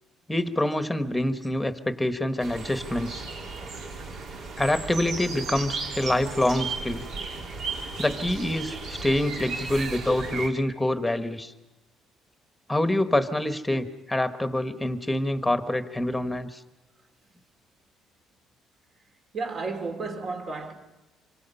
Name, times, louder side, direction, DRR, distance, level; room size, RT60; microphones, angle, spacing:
voice 1, 0.3-3.2 4.6-7.0 8.0-11.5 12.7-16.6, left 1 dB, 5° left, 1.3 m, -26 dB
sound 1, 2.4-10.5, right 4 dB, 65° right, 3.8 m, -35 dB
voice 2, 19.3-20.7, right 4 dB, 45° right, 3.1 m, -32 dB
26.5 x 25.0 x 5.6 m
cardioid pair, 120°, 0 cm